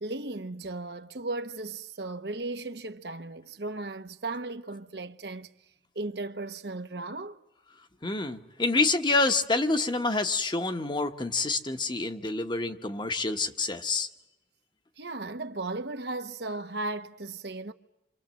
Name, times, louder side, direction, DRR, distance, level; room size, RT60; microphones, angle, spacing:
voice 1, 0.0-5.5 5.9-7.4 15.0-17.7, right 2 dB, 65° right, 1.1 m, -36 dB
voice 2, 8.0-14.1, left 3 dB, 25° left, 1.1 m, -27 dB
28.0 x 25.5 x 7.5 m
head